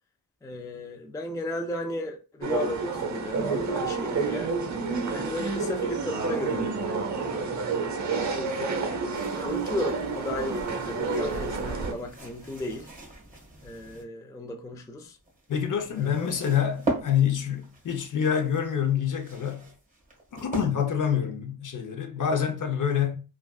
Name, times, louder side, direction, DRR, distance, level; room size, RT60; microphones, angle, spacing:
voice 1, 0.4-4.5 5.1-7.1 7.5-8.8 9.3-12.9 13.6-15.2 15.9-16.3, left 1 dB, 10° left, 0.4 m, -35 dB
sound 1, 2.4-11.9, right 4 dB, 45° right, 0.8 m, -29 dB
sound 2, 9.1-14.0 15.0-21.0, right 2 dB, 20° right, 1.5 m, -40 dB
voice 2, 15.5-19.7 20.3-23.2, left 8 dB, 50° left, 0.7 m, -26 dB
3.4 x 2.4 x 2.3 m
cardioid pair, 90°, 40 cm